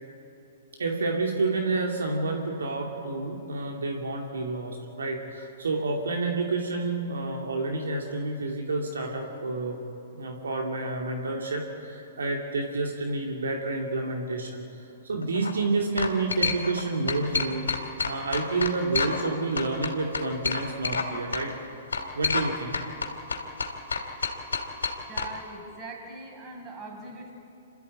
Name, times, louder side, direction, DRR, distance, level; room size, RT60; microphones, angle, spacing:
voice 1, 0.8-9.8 10.1-14.6 15.0-17.7 18.0-21.6 22.1-22.7, right 3 dB, 75° right, 1 dB, 2.6 m, -29 dB
sound 1, 15.2-15.5 16.0-16.8 17.1-19.3 19.6-21.1 21.3-21.4 21.9-22.5 22.7-25.3, left 4 dB, 80° left, 3.0 m, -28 dB
voice 2, 25.1-27.3, right 2 dB, 25° right, 1 dB, 5.6 m, -41 dB
27.5 x 14.0 x 9.0 m, 2.9 s
hypercardioid pair, 115°, 0 cm